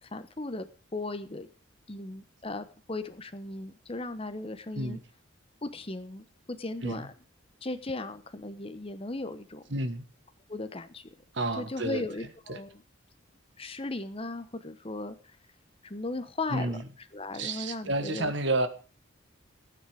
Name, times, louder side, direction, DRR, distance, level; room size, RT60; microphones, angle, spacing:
voice 1, 0.0-1.5 1.9-5.0 5.6-7.1 7.6-9.6 10.5-11.1 11.6-12.8 13.6-15.2 15.8-16.8 17.1-18.3, left 2 dB, 25° left, 0.9 m, -37 dB
voice 2, 9.7-10.0 11.3-12.0 12.5-12.6 16.5-16.8 17.3-18.7, right 2 dB, 60° right, 1.5 m, -30 dB
15.5 x 9.5 x 5.0 m
head